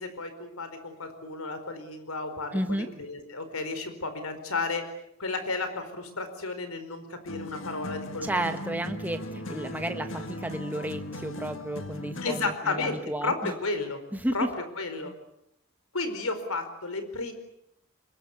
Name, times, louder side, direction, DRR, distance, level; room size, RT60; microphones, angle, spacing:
voice 1, 0.0-4.9 5.2-8.5 12.2-14.0 14.3-14.5 14.8-15.1 15.9-17.3, left 3 dB, 85° left, 9 dB, 4.7 m, -33 dB
voice 2, 2.5-2.9 8.2-13.5 14.1-14.3 15.0-15.1, right 1 dB, 10° right, 7 dB, 1.4 m, -32 dB
sound 1, 7.3-12.6, left 1 dB, 65° left, 1.8 m, -38 dB
25.0 x 22.0 x 8.5 m, 0.78 s
head